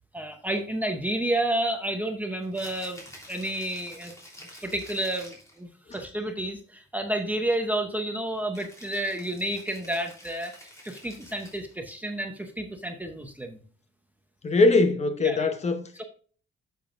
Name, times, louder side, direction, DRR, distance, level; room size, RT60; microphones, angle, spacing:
voice 1, 0.1-4.1 4.6-13.6 15.2-15.5 16.0-16.1, right 1 dB, 10° right, 0.7 m, -30 dB
Rattle (instrument), 2.4-5.6 8.5-11.8, equal, 15° left, 3.2 m, -48 dB
voice 2, 14.4-15.9, left 3 dB, 30° left, 0.9 m, -22 dB
10.5 x 6.9 x 2.5 m
wide cardioid pair, 175°, 21 cm